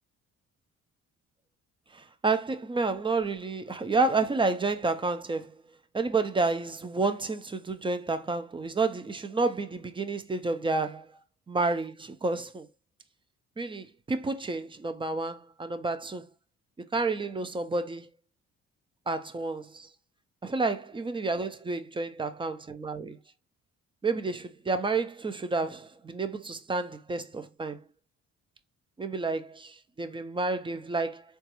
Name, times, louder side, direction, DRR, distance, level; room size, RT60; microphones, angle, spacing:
voice 1, 2.2-5.6 5.9-11.1 11.5-12.7 13.6-16.2 16.8-18.1 19.1-19.9 20.4-23.2 24.0-27.8 29.0-31.2, right 3 dB, 15° right, 0.4 m, -30 dB
3.8 x 2.3 x 2.9 m
cardioid pair, 90°, 30 cm